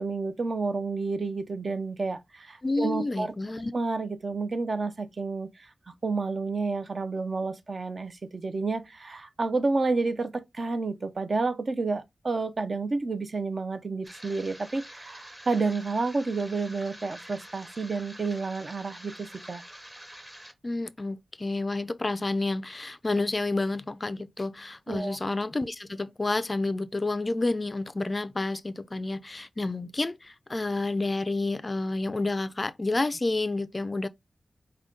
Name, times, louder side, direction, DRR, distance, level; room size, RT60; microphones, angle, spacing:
voice 1, 0.0-3.3 3.7-5.7 6.0-19.6 24.9-25.2, right 3 dB, 50° right, 0.5 m, -30 dB
voice 2, 2.6-3.7 20.6-34.1, left 2 dB, 30° left, 0.3 m, -29 dB
sound 1, 14.0-20.5, equal, 15° right, 0.8 m, -47 dB
4.9 x 2.2 x 3.7 m
wide cardioid pair, 105°, 0 cm